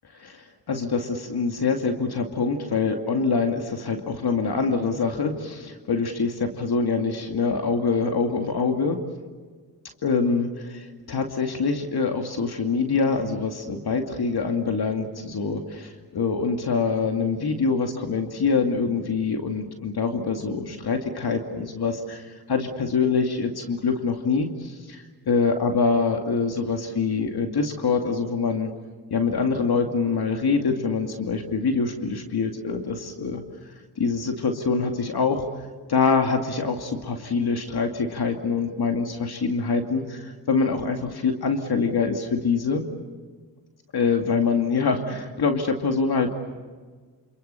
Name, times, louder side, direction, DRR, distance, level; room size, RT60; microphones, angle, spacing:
voice 1, 0.2-9.0 10.0-28.7 29.1-33.4 34.0-35.4 35.9-42.8 43.9-46.3, left 4 dB, 60° left, 4 dB, 2.5 m, -25 dB
28.5 x 28.0 x 6.9 m, 1.5 s
cardioid pair, 70°, 43 cm